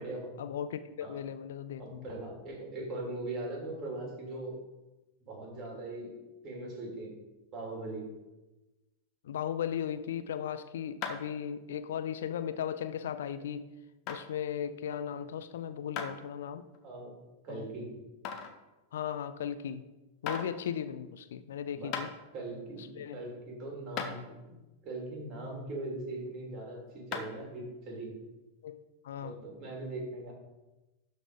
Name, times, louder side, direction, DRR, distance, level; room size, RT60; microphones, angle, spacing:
voice 1, 0.4-2.1 9.2-13.7 14.1-16.6 17.5-17.7 18.9-19.8 20.2-22.1 22.9-23.2 28.6-29.3, left 9 dB, 60° left, 11 dB, 0.4 m, -37 dB
voice 2, 1.8-4.6 5.2-6.1 6.4-7.2 7.5-8.1 16.8-17.2 17.4-18.0 21.7-22.0 22.3-24.2 24.5-24.6 24.8-28.2 29.2-30.3, right 2 dB, 30° right, -1 dB, 3.3 m, -40 dB
sound 1, 11.0-11.4 11.9-12.0 12.8-12.9 14.1-14.2 16.0-16.1 16.7-16.8 18.2-18.6 19.7-19.8 20.3-20.5 21.5-21.6 21.9-22.1 23.4-23.5 24.0-24.1 27.1-27.4, left 6 dB, 40° left, 1.1 m, -36 dB
12.0 x 4.1 x 5.1 m, 1.1 s
figure-of-eight pair, 90°, 0 cm